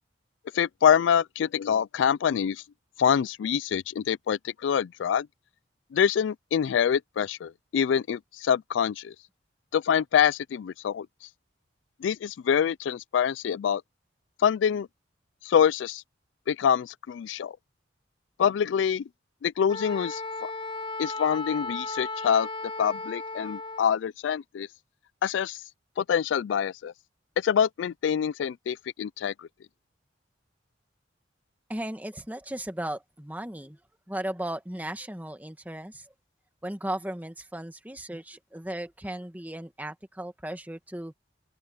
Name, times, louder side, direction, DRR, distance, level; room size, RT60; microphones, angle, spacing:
voice 1, 0.5-2.6 3.0-5.3 5.9-9.1 9.7-11.1 12.0-13.8 14.4-14.9 15.4-16.0 16.5-17.6 18.4-19.1 19.4-20.5 21.0-22.5 22.8-24.7 25.2-25.6 26.0-26.9 27.4-29.5, left 8 dB, 85° left, 0.3 m, -25 dB
Wind instrument woodwind instrument, 19.7-24.0, left 3 dB, 25° left, 1.0 m, -35 dB
voice 2, 31.7-33.8 34.1-36.1 36.6-41.1, right 1 dB, 10° right, 1.8 m, -36 dB
open air
head